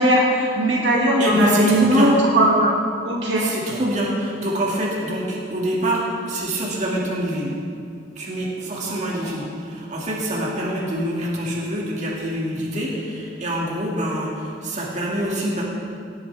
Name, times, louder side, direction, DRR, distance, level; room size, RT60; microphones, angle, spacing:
voice 1, 0.0-2.7 3.0-3.6 8.8-9.3, right 1 dB, 70° right, -3 dB, 2.1 m, -19 dB
voice 2, 1.2-2.1 3.4-7.5 8.2-15.6, right 1 dB, 40° right, -4 dB, 2.1 m, -25 dB
18.0 x 9.7 x 3.4 m, 2.3 s
head